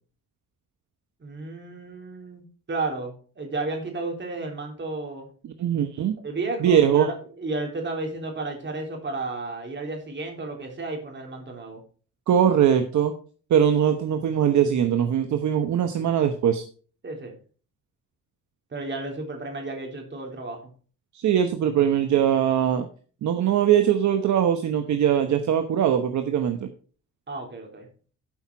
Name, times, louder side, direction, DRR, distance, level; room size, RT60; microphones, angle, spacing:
voice 1, 1.2-5.3 6.2-11.8 17.0-17.3 18.7-20.6 27.3-27.9, right 3 dB, 35° right, 2 dB, 3.6 m, -33 dB
voice 2, 5.4-6.2 6.6-7.1 12.3-13.1 13.5-16.6 21.1-22.9 23.2-26.7, right 9 dB, 65° right, 7 dB, 1.1 m, -21 dB
12.0 x 5.7 x 4.6 m, 0.40 s
cardioid pair, 100°, 31 cm